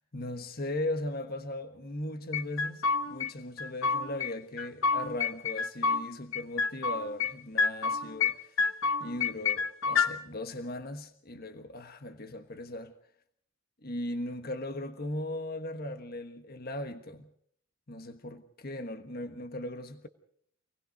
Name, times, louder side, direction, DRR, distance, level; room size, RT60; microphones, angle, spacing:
voice 1, 0.1-8.7 9.0-12.9 13.8-17.3 17.9-20.1, left 1 dB, 50° left, 1.3 m, -38 dB
sound 1, 2.3-3.3 3.6-4.3 4.6-6.0 6.3-7.3 7.6-8.3 8.6-10.1, left 5 dB, 70° left, 1.3 m, -28 dB
26.5 x 19.5 x 5.2 m
head